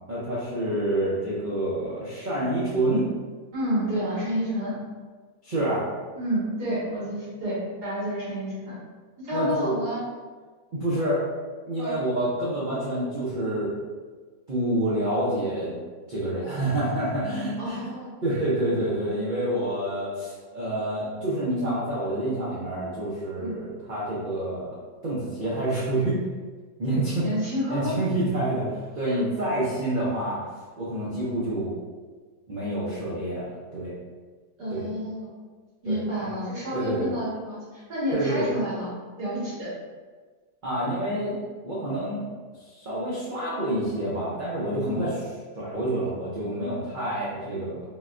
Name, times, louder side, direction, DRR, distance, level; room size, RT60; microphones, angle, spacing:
voice 1, 0.1-3.1 5.4-5.9 9.3-9.7 10.7-11.2 11.7-13.7 14.5-15.7 16.1-17.8 18.2-24.7 25.0-26.2 26.8-27.3 27.7-30.4 30.8-31.7 32.5-34.0 34.7-34.9 35.9-36.0 36.2-36.3 36.7-37.1 38.1-38.5 40.6-41.4 41.6-42.2 42.6-45.1 45.5-47.8, right 1 dB, 85° right, -9 dB, 0.4 m, -27 dB
voice 2, 3.5-4.7 6.2-8.7 9.2-10.0 11.8-11.9 17.6-18.1 23.4-23.5 27.2-27.9 29.0-29.5 31.2-31.3 34.6-35.3 35.8-38.9 39.2-39.7 44.8-45.0, equal, 70° right, -10 dB, 2.0 m, -29 dB
3.8 x 2.2 x 2.4 m, 1.4 s
omnidirectional pair, 1.8 m